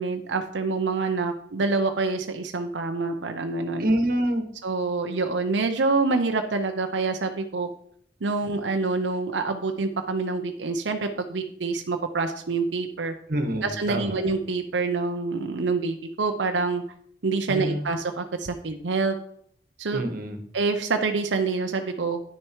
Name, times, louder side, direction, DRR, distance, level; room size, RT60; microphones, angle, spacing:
voice 1, 0.0-3.9 4.6-7.7 8.2-13.1 13.6-16.8 17.2-19.2 19.8-20.0 20.5-22.2, right 3 dB, 85° right, 5 dB, 0.7 m, -26 dB
voice 2, 3.8-4.4 13.3-14.2 17.5-17.9 19.9-20.4, right 1 dB, 50° right, 6 dB, 1.4 m, -26 dB
10.0 x 6.5 x 4.6 m, 0.65 s
head